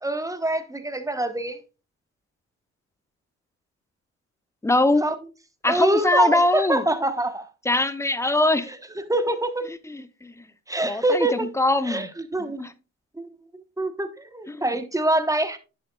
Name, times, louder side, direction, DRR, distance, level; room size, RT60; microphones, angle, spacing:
voice 1, 0.0-1.6 5.0-5.2 5.7-7.4 8.7-9.7 10.7-11.5 11.8-12.6 13.2-13.3 13.8-15.6, right 1 dB, 10° right, 1.0 m, -25 dB
voice 2, 4.6-5.1 5.6-6.8 7.6-8.7 9.9-10.4 10.8-12.1 12.4-12.7 14.5-14.6, left 2 dB, 10° left, 0.7 m, -22 dB
10.5 x 6.4 x 2.3 m
cardioid pair, 90°, 30 cm